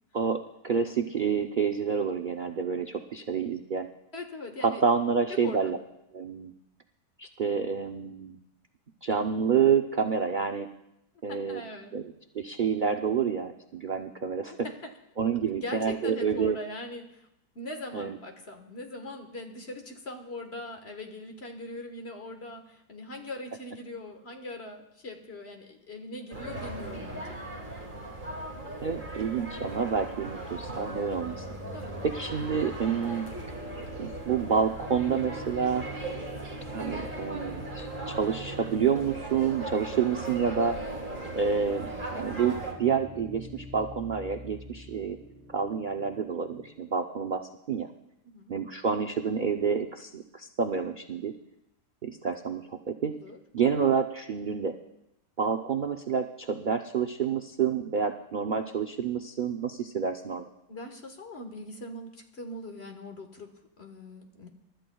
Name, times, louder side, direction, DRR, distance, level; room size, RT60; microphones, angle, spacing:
voice 1, 0.1-3.9 4.6-5.8 6.1-6.5 7.2-8.4 9.0-10.7 11.2-11.6 11.9-12.0 12.3-14.5 15.2-16.6 17.9-18.2 28.8-31.5 32.1-33.3 34.0-35.9 36.7-40.8 41.3-45.2 45.5-47.9 48.5-51.3 52.0-53.1 53.5-54.7 55.4-60.4, right 6 dB, 70° right, 5 dB, 0.4 m, -28 dB
voice 2, 4.1-4.8 5.3-5.7 11.3-11.9 14.6-14.9 15.5-17.3 17.5-27.6 31.7-32.0 48.2-48.5 53.1-53.4 60.7-64.5, left 2 dB, 40° left, 4 dB, 1.6 m, -41 dB
sound 1, 26.3-42.7, right 2 dB, 30° right, 2.4 m, -38 dB
sound 2, 30.8-46.8, equal, 10° right, 0.7 m, -46 dB
28.0 x 13.0 x 2.3 m, 0.84 s
omnidirectional pair, 1.7 m